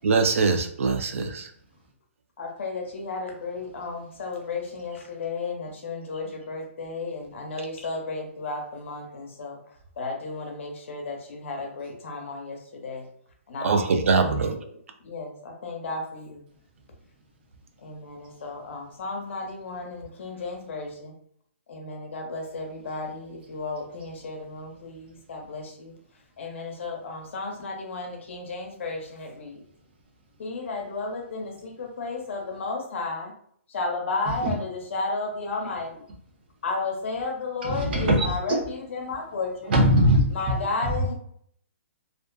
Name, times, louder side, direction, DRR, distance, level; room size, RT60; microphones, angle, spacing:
voice 1, 0.0-1.5 13.6-14.6, right 4 dB, 75° right, 0.4 m, -23 dB
voice 2, 2.4-9.6 10.0-13.1 13.5-13.9 14.4-14.5 15.0-16.4 17.8-21.1 21.7-25.9 26.4-29.6 30.4-33.3 33.7-36.0 36.6-39.7 40.3-41.1, left 3 dB, 65° left, 0.7 m, -33 dB
voice 3, 37.6-38.3 39.7-40.5 40.8-41.0, equal, 50° right, 0.7 m, -21 dB
2.5 x 2.3 x 2.2 m
hypercardioid pair, 155°, 7 cm